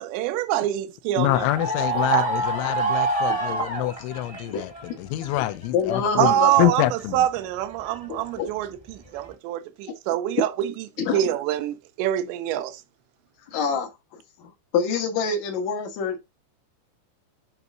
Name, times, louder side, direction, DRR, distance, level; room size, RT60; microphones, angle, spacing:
voice 1, 0.0-1.5 1.8-2.3 6.2-10.9 11.1-12.8, right 13 dB, 80° right, 2.7 m, -25 dB
voice 2, 1.2-4.7 5.0-7.3, left 14 dB, 85° left, 2.9 m, -26 dB
sound 1, 1.3-4.9 5.2-7.0 7.4-8.3 9.0-9.3, right 3 dB, 20° right, 1.0 m, -28 dB
voice 3, 5.7-6.5 8.1-8.5 11.1-11.2 13.5-13.9 14.7-16.2, left 5 dB, 65° left, 1.8 m, -25 dB
10.5 x 4.6 x 2.7 m
omnidirectional pair, 5.5 m